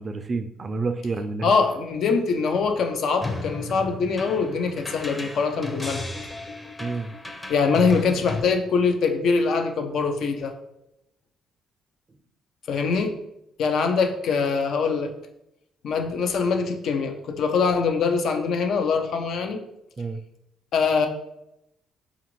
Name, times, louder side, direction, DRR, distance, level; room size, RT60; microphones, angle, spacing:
voice 1, 0.0-1.5 6.8-7.1 20.0-20.2, right 3 dB, 40° right, 9 dB, 0.4 m, -29 dB
voice 2, 1.4-6.1 7.5-10.5 12.7-13.1 13.6-15.1 15.8-19.6 20.7-21.1, left 5 dB, 70° left, 5 dB, 0.5 m, -23 dB
sound 1, 3.2-8.4, left 2 dB, 20° left, 0.6 m, -35 dB
5.0 x 2.5 x 3.0 m, 0.85 s
supercardioid pair, 65°, 0 cm